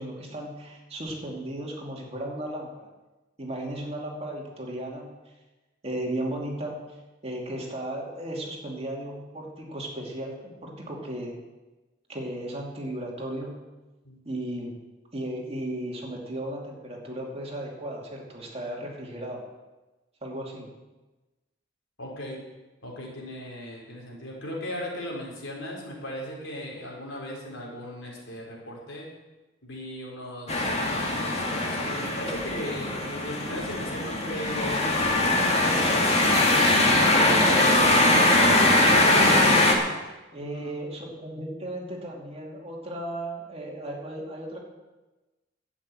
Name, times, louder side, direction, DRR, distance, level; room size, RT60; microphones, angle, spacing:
voice 1, 0.0-2.9 3.4-5.1 5.8-7.0 7.2-11.4 12.1-13.6 14.2-14.7 15.1-19.4 20.2-20.7 36.9-39.6 40.3-44.6, right 1 dB, 35° right, -1 dB, 2.6 m, -35 dB
voice 2, 22.0-22.4 22.8-29.1 29.6-35.2 40.4-40.8, left 1 dB, 80° left, -2 dB, 4.5 m, -37 dB
sound 1, 30.5-39.7, left 2 dB, 35° left, 2.0 m, -21 dB
12.0 x 8.1 x 8.7 m, 1.1 s
head